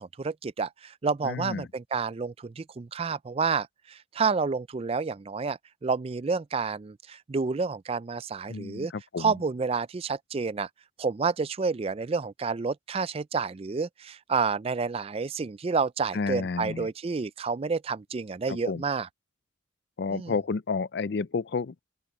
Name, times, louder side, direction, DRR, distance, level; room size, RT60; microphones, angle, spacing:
voice 1, 0.0-8.9 9.2-10.7 11.0-19.1 20.1-20.3, right 5 dB, 30° right, 0.4 m, -29 dB
voice 2, 1.2-1.7 8.5-9.3 16.1-16.9 18.7-18.8 20.0-21.8, left 4 dB, 55° left, 0.4 m, -31 dB
open air
head